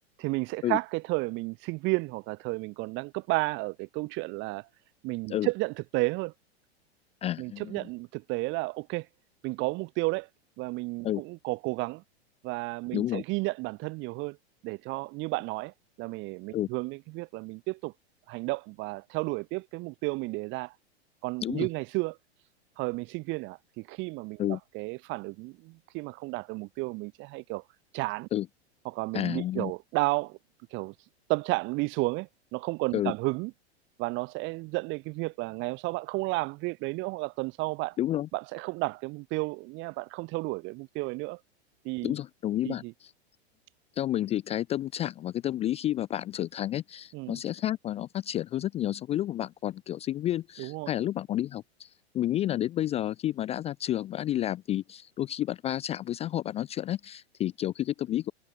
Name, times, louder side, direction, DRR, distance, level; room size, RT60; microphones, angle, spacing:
voice 1, 0.2-4.7 5.0-6.3 7.4-9.1 9.4-10.3 10.6-12.0 12.4-14.4 14.6-17.9 18.3-20.7 21.2-22.2 22.8-27.6 27.9-28.3 28.8-30.4 30.7-30.9 31.3-33.5 34.0-38.0 38.3-41.4 41.8-42.1 42.6-42.9 47.1-47.4 50.6-50.9, right 24 dB, 35° right, 0.7 m, -32 dB
voice 2, 7.2-7.9 11.0-11.2 12.9-13.2 16.5-16.7 21.4-21.7 24.4-24.6 28.3-28.5 29.1-29.7 32.9-33.1 38.0-38.3 42.0-43.1 44.0-51.9 52.1-58.3, left 12 dB, 20° left, 0.4 m, -30 dB
hypercardioid pair, 110°, 33 cm